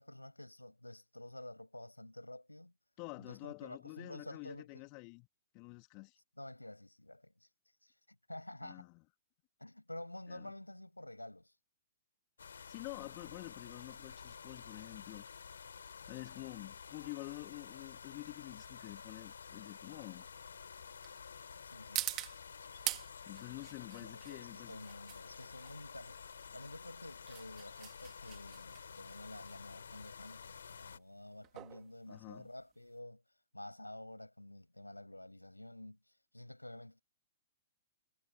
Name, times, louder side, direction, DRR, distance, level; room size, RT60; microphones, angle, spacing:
voice 1, 0.0-2.7 3.2-4.9 6.4-7.5 7.8-7.9 8.3-8.9 9.6-11.5 21.6-22.1 24.0-26.2 26.5-33.2 33.5-37.0, left 1 dB, 85° left, 7.6 m, -50 dB
voice 2, 3.0-5.3 5.5-6.2 8.6-9.0 10.3-10.5 12.7-15.3 16.1-20.3 23.3-24.8 32.1-32.5, left 34 dB, 35° left, 3.4 m, -48 dB
sound 1, 12.4-31.0, left 6 dB, 65° left, 6.8 m, -51 dB
sound 2, 18.8-33.0, right 17 dB, 30° right, 2.8 m, -46 dB
figure-of-eight pair, 110°, 0 cm